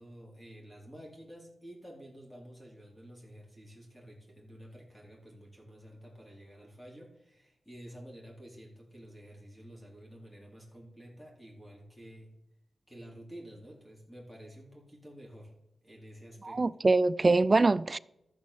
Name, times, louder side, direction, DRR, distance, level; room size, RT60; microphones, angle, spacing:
voice 1, 0.0-12.3 12.9-15.5 15.8-16.6, equal, 10° left, 4.2 m, -50 dB
voice 2, 16.4-18.0, right 3 dB, 30° right, 0.4 m, -24 dB
13.5 x 6.2 x 7.1 m
wide cardioid pair, 90°, 0 cm